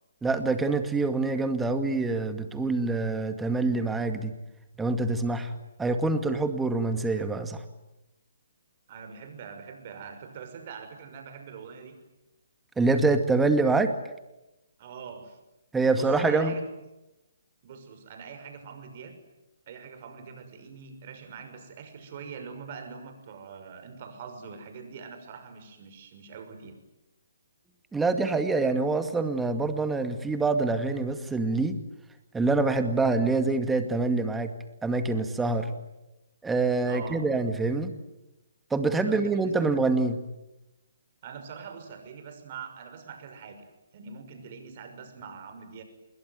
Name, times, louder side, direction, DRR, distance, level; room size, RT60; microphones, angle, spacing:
voice 1, 0.2-4.3 4.8-5.5 5.8-7.6 12.8-13.9 15.7-16.6 27.9-31.8 32.3-34.5 34.8-35.7 36.4-37.9 38.7-40.2, right 3 dB, 5° right, 8 dB, 2.2 m, -25 dB
voice 2, 8.9-12.0 14.8-15.4 15.9-16.6 17.6-19.2 19.7-26.8 36.8-37.3 39.1-39.7 41.2-43.7 43.9-45.8, right 6 dB, 45° right, 7 dB, 6.2 m, -43 dB
27.0 x 21.5 x 9.6 m, 0.98 s
hypercardioid pair, 140°, 0 cm